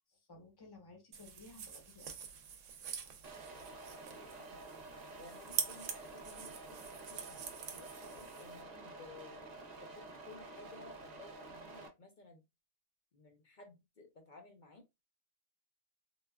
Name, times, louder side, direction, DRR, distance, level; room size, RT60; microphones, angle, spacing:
voice 1, 0.0-2.3, left 3 dB, 20° left, 2 dB, 0.7 m, -57 dB
sound 1, 1.1-8.6, right 7 dB, 70° right, 0.9 m, -45 dB
sound 2, 3.2-11.9, right 2 dB, 45° right, 0.5 m, -50 dB
voice 2, 4.2-4.6 5.2-9.5 9.8-12.4 13.1-14.8, left 4 dB, 55° left, 3 dB, 0.5 m, -57 dB
3.7 x 2.2 x 2.2 m, 0.22 s
omnidirectional pair, 1.4 m